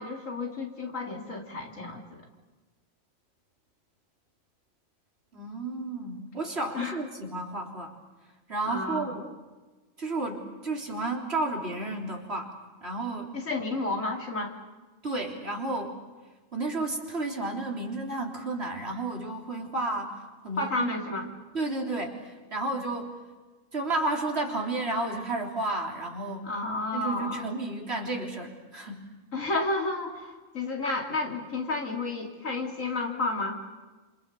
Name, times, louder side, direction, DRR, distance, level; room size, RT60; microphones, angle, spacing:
voice 1, 0.0-2.2 6.7-7.0 8.7-9.1 13.3-14.5 20.6-21.3 26.4-27.5 29.3-33.6, left 3 dB, 80° left, 1 dB, 3.6 m, -31 dB
voice 2, 5.3-8.0 8.5-9.4 10.0-12.5 12.8-13.4 15.0-16.0 16.5-20.2 20.4-20.9 21.5-23.2 23.7-26.5 26.9-29.1, right 2 dB, 55° right, 0 dB, 4.0 m, -32 dB
28.0 x 27.0 x 7.0 m, 1.2 s
omnidirectional pair, 1.3 m